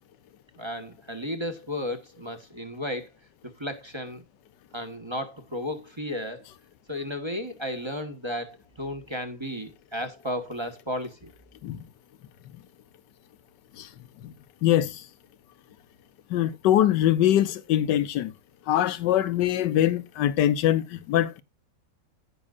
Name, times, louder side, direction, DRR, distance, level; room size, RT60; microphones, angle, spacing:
voice 1, 0.6-3.1 3.6-4.2 4.7-6.5 6.9-11.3, left 1 dB, 15° right, 1.1 m, -34 dB
voice 2, 14.6-15.0 16.3-18.3 18.7-21.4, left 12 dB, 65° left, 1.4 m, -23 dB
17.5 x 5.9 x 2.4 m
omnidirectional pair, 2.1 m